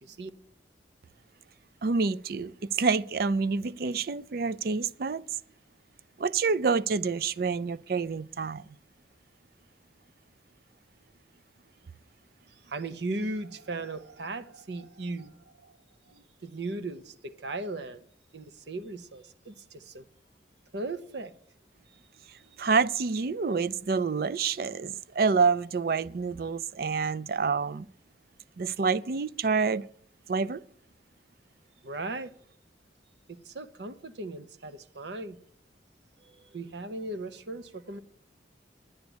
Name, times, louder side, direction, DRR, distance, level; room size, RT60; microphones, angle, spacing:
voice 1, 1.8-5.3 6.2-8.6 22.3-27.9 28.6-29.9 30.3-30.6, right 5 dB, 55° right, 0.4 m, -27 dB
voice 2, 12.7-15.7 16.0-18.0 18.3-20.0 20.7-21.3 31.8-32.3 33.3-35.4 36.2-38.0, right 2 dB, 70° right, 0.8 m, -37 dB
10.5 x 9.5 x 7.9 m
head